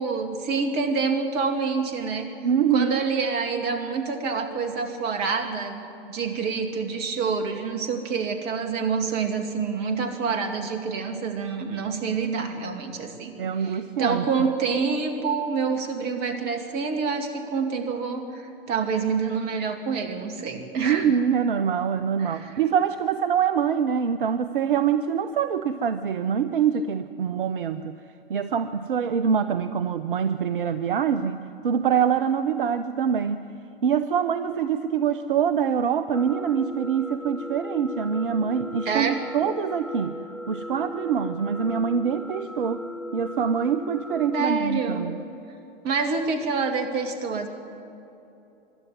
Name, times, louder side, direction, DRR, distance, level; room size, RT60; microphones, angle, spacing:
voice 1, 0.0-2.3 2.7-13.3 13.6-21.1 22.2-22.6 38.9-39.2 44.3-45.1 45.8-47.5, right 5 dB, 30° right, 6 dB, 2.4 m, -27 dB
voice 2, 2.4-2.9 13.4-14.5 20.8-27.9 28.3-33.5 33.8-40.2 40.5-42.9 43.1-45.2, right 7 dB, 60° right, 11 dB, 0.8 m, -25 dB
sound 1, 36.1-44.5, left 1 dB, ahead, 0.7 m, -37 dB
25.0 x 12.0 x 9.4 m, 2.9 s
figure-of-eight pair, 100°, 30 cm